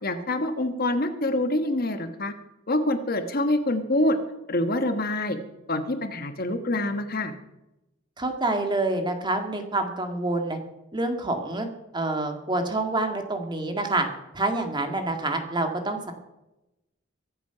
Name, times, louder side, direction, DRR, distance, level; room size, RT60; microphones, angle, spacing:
voice 1, 0.0-2.3 2.7-4.2 4.5-5.4 5.7-7.3, left 1 dB, 50° left, 8 dB, 1.3 m, -26 dB
voice 2, 8.2-10.6 10.9-11.7 11.9-14.1 14.3-16.1, right 2 dB, 25° right, 5 dB, 1.9 m, -27 dB
23.5 x 7.9 x 5.7 m, 0.93 s
head